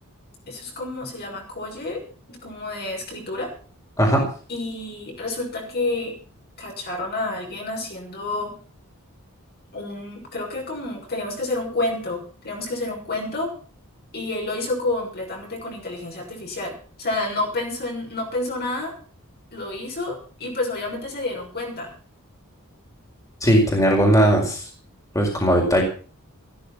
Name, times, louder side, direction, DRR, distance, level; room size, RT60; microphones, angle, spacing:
voice 1, 0.5-3.5 4.5-6.2 6.6-8.6 9.7-13.5 14.1-18.9 19.5-21.9, left 2 dB, 45° left, 1 dB, 6.5 m, -29 dB
voice 2, 23.4-24.6 25.1-25.8, equal, 15° left, 0 dB, 4.7 m, -18 dB
15.0 x 13.5 x 5.8 m, 0.40 s
head